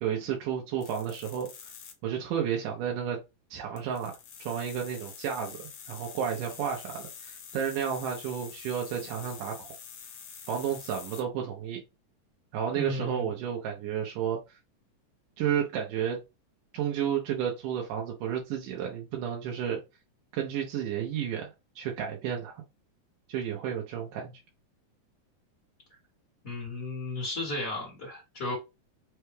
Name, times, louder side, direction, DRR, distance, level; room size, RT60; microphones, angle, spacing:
voice 1, 0.0-1.5 2.0-3.2 3.5-9.7 10.5-11.8 12.5-14.4 15.4-16.2 16.7-19.8 20.3-22.6 23.3-24.4, right 8 dB, 90° right, 2.3 m, -32 dB
sound 1, 0.8-1.9 3.8-11.2, left 7 dB, 70° left, 2.1 m, -46 dB
voice 2, 12.7-13.3 26.4-28.6, left 2 dB, 40° left, 1.2 m, -34 dB
5.5 x 2.3 x 3.1 m
omnidirectional pair, 3.6 m